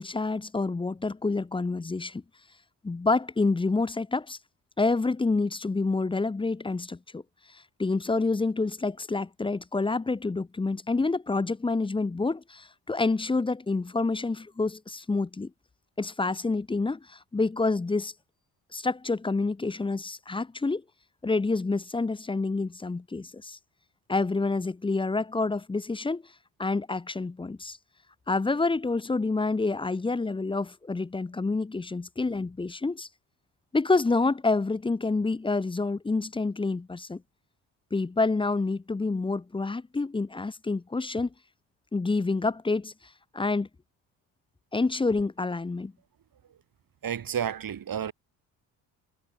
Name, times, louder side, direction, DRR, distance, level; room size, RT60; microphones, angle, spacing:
voice 1, 0.0-2.2 2.8-4.4 4.8-7.2 7.5-15.5 16.0-18.1 18.7-20.8 21.2-23.6 24.1-26.2 26.6-27.8 28.3-33.1 33.7-37.2 37.9-41.3 41.9-42.9 43.3-43.7 44.7-45.9, left 3 dB, 10° left, 0.6 m, -28 dB
voice 2, 47.0-48.1, right 8 dB, 45° right, 2.4 m, -31 dB
hypercardioid pair, 50°, 49 cm